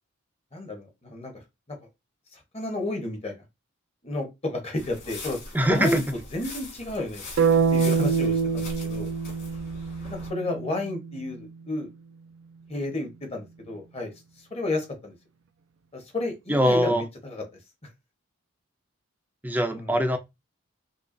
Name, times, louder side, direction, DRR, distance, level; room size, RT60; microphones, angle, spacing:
voice 1, 0.5-1.3 2.3-3.4 4.0-5.4 5.7-6.0 6.3-7.2 7.7-9.1 10.1-11.9 12.7-14.1 14.5-15.1 15.9-17.4 17.8-17.9 19.7-20.0, left 2 dB, 30° left, 1.1 m, -31 dB
sound 1, 4.8-10.3, left 3 dB, 50° left, 2.5 m, -41 dB
voice 2, 5.5-6.0 16.5-17.0 19.4-20.2, equal, 10° right, 0.5 m, -22 dB
sound 2, 7.4-11.4, right 5 dB, 65° right, 0.4 m, -25 dB
5.4 x 2.4 x 2.6 m
head